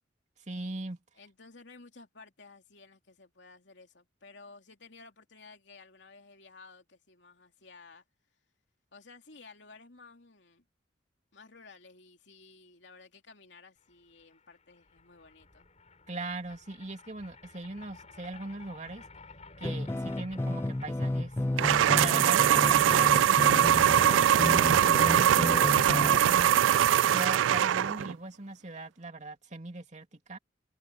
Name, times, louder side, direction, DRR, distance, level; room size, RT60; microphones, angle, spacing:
voice 1, 0.5-1.0 16.1-19.0 19.6-21.3 21.9-26.6 27.0-30.4, right 2 dB, 40° right, 2.7 m, -40 dB
voice 2, 1.1-8.0 8.9-10.6 11.3-15.7 23.9-24.3, left 3 dB, 65° left, 3.1 m, -54 dB
sound 1, 13.9-14.0 14.2-25.0, left 2 dB, 35° left, 7.4 m, -53 dB
sound 2, 19.6-26.2, left 1 dB, 15° left, 0.3 m, -32 dB
sound 3, 21.6-28.1, right 10 dB, 85° right, 0.3 m, -22 dB
open air
head